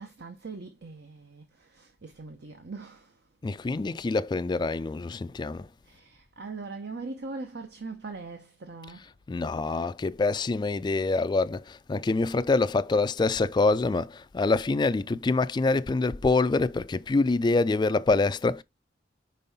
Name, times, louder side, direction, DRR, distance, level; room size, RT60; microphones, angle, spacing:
voice 1, 0.0-3.1 5.9-9.0 9.6-9.8, right 3 dB, 65° right, 0.8 m, -41 dB
voice 2, 3.4-5.7 9.3-18.6, left 3 dB, 25° left, 0.3 m, -25 dB
5.3 x 4.6 x 4.0 m
head